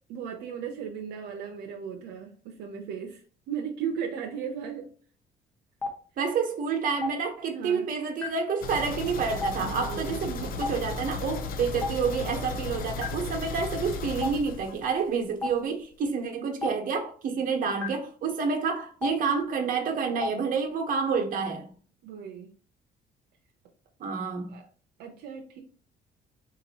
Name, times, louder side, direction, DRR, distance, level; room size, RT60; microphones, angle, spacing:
voice 1, 0.1-4.9 7.5-7.9 9.6-10.2 12.2-12.6 22.0-22.5 24.5-24.7 25.0-25.6, right 7 dB, 80° right, 0.6 m, -36 dB
Stream, 5.8-5.9 7.0-7.1 8.2-8.3 9.4-9.5 10.6-10.7 11.8-11.9 13.0-13.1 14.2-14.3 15.4-15.5 16.6-16.7 17.8-17.9 19.0-19.1 20.2-20.3, left 5 dB, 10° left, 1.1 m, -29 dB
voice 2, 6.2-21.7 24.0-24.5, right 5 dB, 55° right, 1.0 m, -29 dB
sound 1, 8.6-15.3 15.6-15.7 16.1-16.2, left 4 dB, 60° left, 0.6 m, -35 dB
4.5 x 2.8 x 2.9 m
cardioid pair, 110°, 17 cm